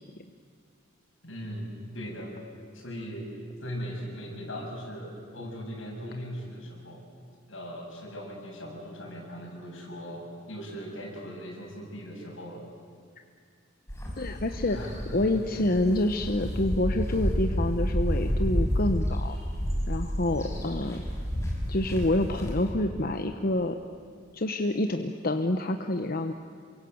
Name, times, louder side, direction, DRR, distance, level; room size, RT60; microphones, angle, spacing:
voice 1, 1.2-2.3 2.7-3.3 3.6-7.0 7.5-12.7 14.7-15.0 15.6-15.7 20.4-20.6, equal, 80° left, -1 dB, 7.6 m, -39 dB
sound 1, 13.9-22.7, equal, 15° left, 5.3 m, -30 dB
voice 2, 14.2-19.4 19.9-21.0 21.7-23.8 24.3-26.3, left 1 dB, 50° left, 6 dB, 1.0 m, -27 dB
27.5 x 24.0 x 8.0 m, 2.2 s
head